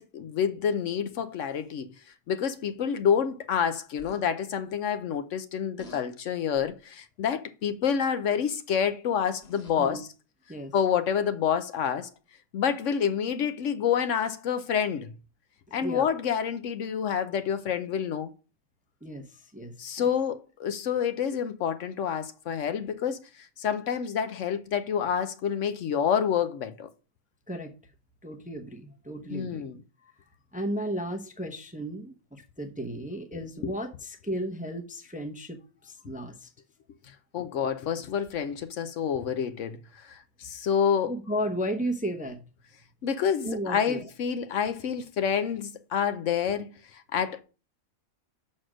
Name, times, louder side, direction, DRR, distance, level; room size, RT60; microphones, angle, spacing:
voice 1, 0.0-1.9 2.3-10.1 10.7-12.1 12.5-15.1 15.7-18.3 19.8-26.9 29.3-29.8 37.3-41.1 43.0-47.4, left 8 dB, 65° left, 0.9 m, -28 dB
sound 1, 4.0-4.2 5.8-6.1 6.5-6.8 8.2-8.6 9.2-9.9 10.8-10.9, equal, 50° left, 1.8 m, -50 dB
voice 2, 15.7-16.1 19.0-19.2 19.5-20.1 27.5-27.7 28.2-29.7 30.5-36.5 41.1-42.4 43.4-44.1, equal, 10° right, 0.6 m, -34 dB
6.3 x 4.2 x 6.1 m
omnidirectional pair, 1.5 m